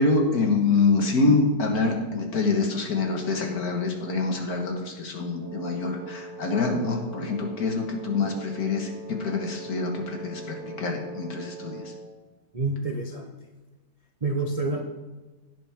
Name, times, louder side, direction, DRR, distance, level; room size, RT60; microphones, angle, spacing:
voice 1, 0.0-11.9, left 3 dB, 55° left, 2 dB, 1.9 m, -25 dB
Wind instrument woodwind instrument, 5.4-12.2, right 2 dB, 70° right, 1.9 m, -41 dB
voice 2, 12.5-13.3 14.2-14.8, right 3 dB, 50° right, 2 dB, 0.4 m, -28 dB
16.0 x 7.9 x 3.5 m, 1.2 s
omnidirectional pair, 2.0 m